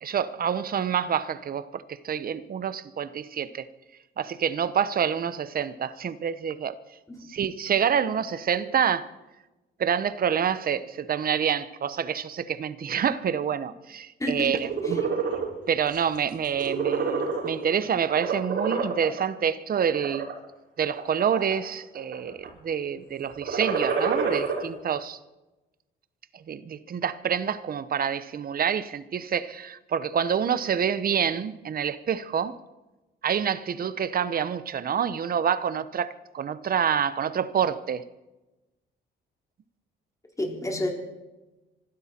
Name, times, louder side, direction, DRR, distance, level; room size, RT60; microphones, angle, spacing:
voice 1, 0.0-3.7 4.2-6.8 7.3-9.1 9.8-15.0 15.7-20.3 20.8-25.2 26.3-32.6 33.2-38.0, right 8 dB, 50° right, 1.0 m, -27 dB
voice 2, 14.2-14.5 14.8-15.0 40.4-40.9, left 1 dB, 15° left, 4.3 m, -30 dB
sound 1, 14.5-15.5 15.9-16.2 16.5-17.7 18.1-19.2 19.8-20.3 20.9-21.7 22.0-22.5 23.3-24.6, right 5 dB, 65° right, 5.6 m, -27 dB
25.5 x 12.5 x 4.4 m
cardioid pair, 90°, 20 cm